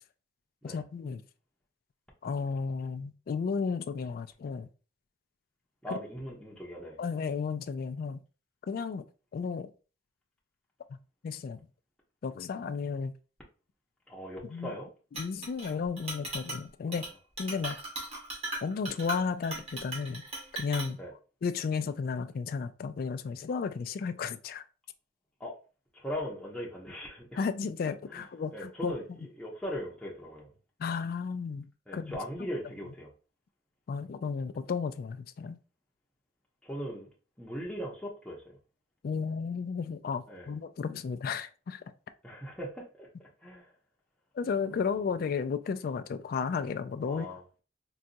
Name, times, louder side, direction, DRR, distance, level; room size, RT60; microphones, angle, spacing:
voice 1, 0.6-1.2 2.2-4.7 5.9-6.0 7.0-8.2 8.7-9.0 9.3-9.7 10.9-11.0 11.2-11.6 12.2-13.1 14.4-14.7 15.1-17.1 17.4-17.8 18.6-20.2 20.5-21.0 21.4-24.6 27.4-28.9 30.8-31.7 31.9-32.1 32.4-32.5 33.9-35.6 39.0-41.8 44.3-47.6, left 5 dB, 55° left, 0.3 m, -33 dB
voice 2, 5.8-7.0 14.1-14.9 16.9-17.0 21.0-21.1 25.4-25.5 25.9-27.5 28.1-28.2 28.5-29.0 29.4-30.5 31.9-33.1 36.6-37.1 37.4-38.6 40.3-40.5 42.2-43.7 47.1-47.4, equal, 5° left, 0.7 m, -39 dB
Chink clink, 15.1-15.7 16.0-16.6 16.9-17.1 17.4-20.9, right 2 dB, 35° right, 1.2 m, -38 dB
3.9 x 2.3 x 2.6 m
head